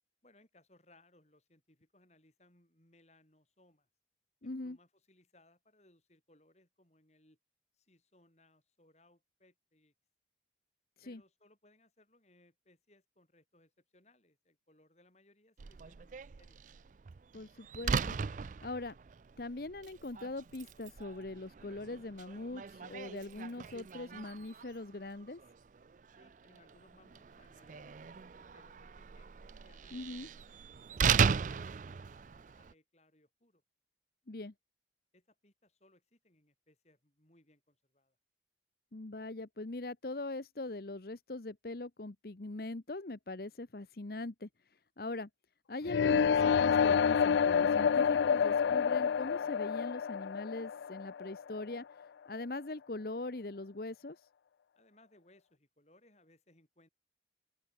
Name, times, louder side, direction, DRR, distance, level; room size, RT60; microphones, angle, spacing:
voice 1, 0.2-3.9 4.4-7.4 7.7-9.9 11.0-16.6 26.2-33.6 35.1-38.2 54.8-56.9, left 1 dB, 35° left, 5.9 m, -67 dB
voice 2, 4.4-4.8 11.1-11.2 17.3-18.2 18.6-18.9 19.4-25.4 29.9-30.3 34.3-34.5 38.9-44.5 45.0-45.3 45.7-51.9 52.2-54.2, left 2 dB, 55° left, 0.9 m, -41 dB
Slam, 15.6-32.7, right 6 dB, 45° right, 0.4 m, -38 dB
sound 1, 45.9-51.8, left 7 dB, 75° left, 0.3 m, -28 dB
open air
head